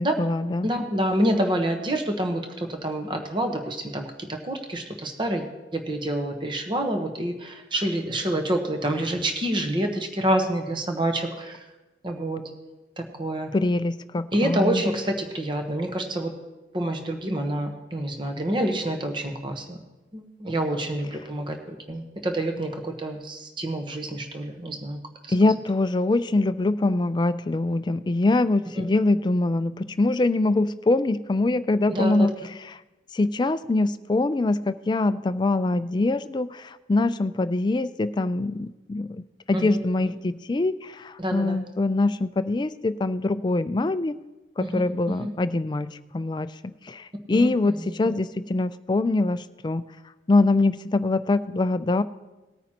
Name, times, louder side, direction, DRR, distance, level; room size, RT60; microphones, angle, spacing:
voice 1, 0.0-0.7 13.5-14.8 25.3-32.3 33.1-44.2 44.6-49.9 50.3-52.0, left 2 dB, 25° left, 12 dB, 0.3 m, -24 dB
voice 2, 0.6-5.5 5.7-11.6 12.0-12.4 13.0-13.5 14.3-16.3 16.7-19.8 20.1-25.0 25.2-25.3 28.8-28.9 31.9-32.3 39.5-39.8 40.0-40.1 41.2-41.6 44.6-44.8 45.1-45.3 47.3-48.1, right 1 dB, 25° right, 4 dB, 1.1 m, -27 dB
19.0 x 9.2 x 2.9 m, 1.1 s
head